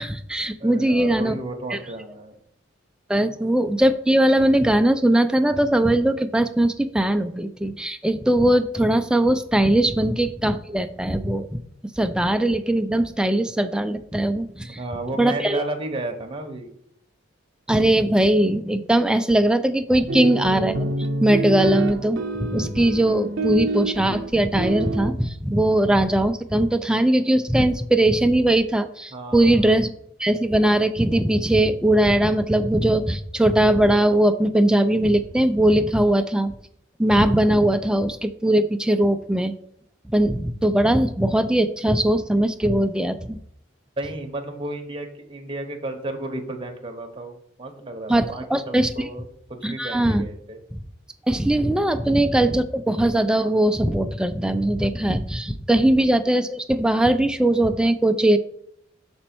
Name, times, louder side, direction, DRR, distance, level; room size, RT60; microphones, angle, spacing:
voice 1, 0.0-1.4 1.7-1.8 3.1-11.6 12.0-14.8 15.2-15.6 17.7-20.8 21.2-29.9 30.2-36.5 37.0-39.5 40.1-43.4 48.1-48.3 48.5-49.1 49.6-50.2 51.3-58.4, right 1 dB, 5° right, 8 dB, 0.3 m, -20 dB
voice 2, 0.6-2.4 3.2-3.3 14.6-16.7 29.1-29.7 44.0-50.6, right 2 dB, 25° right, 2 dB, 0.9 m, -33 dB
sound 1, 20.1-25.1, right 2 dB, 70° right, 0.6 m, -27 dB
6.1 x 4.3 x 4.4 m, 0.69 s
head